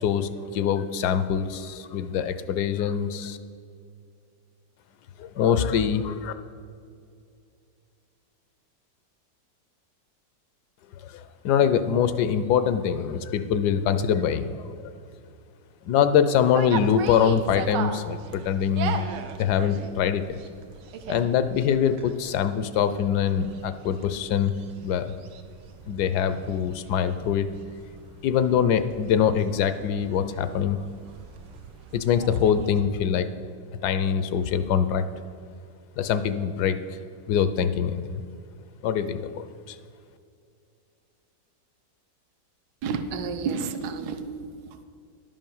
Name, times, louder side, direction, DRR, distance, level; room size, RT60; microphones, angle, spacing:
voice 1, 0.0-3.4 5.2-6.3 11.0-14.5 14.8-14.9 15.8-19.1 19.4-20.4 21.1-24.5 24.8-25.1 25.9-27.5 28.2-30.8 31.9-33.3 33.8-35.0 36.0-36.8 37.3-38.0 38.8-39.8, left 8 dB, 75° left, 11 dB, 1.1 m, -24 dB
sound 1, 16.5-32.8, right 6 dB, 90° right, 1.4 m, -39 dB
voice 2, 42.8-44.8, right 5 dB, 70° right, 8 dB, 1.3 m, -31 dB
11.0 x 5.6 x 7.1 m, 2.4 s
omnidirectional pair, 1.9 m